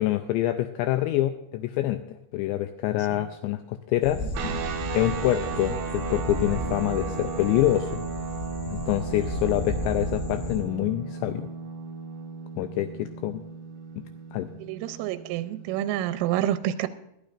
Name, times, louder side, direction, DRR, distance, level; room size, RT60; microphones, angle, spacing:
voice 1, 0.0-4.3 4.9-8.0 8.7-11.5 12.6-13.4 14.3-14.5, left 14 dB, 90° left, 9 dB, 2.5 m, -26 dB
sound 1, 4.0-10.6, equal, 65° left, 5.8 m, -34 dB
sound 2, 4.3-16.1, right 5 dB, 65° right, 3.1 m, -36 dB
voice 2, 14.6-16.9, right 12 dB, 90° right, 11 dB, 3.2 m, -28 dB
20.5 x 11.5 x 2.5 m, 0.83 s
omnidirectional pair, 5.6 m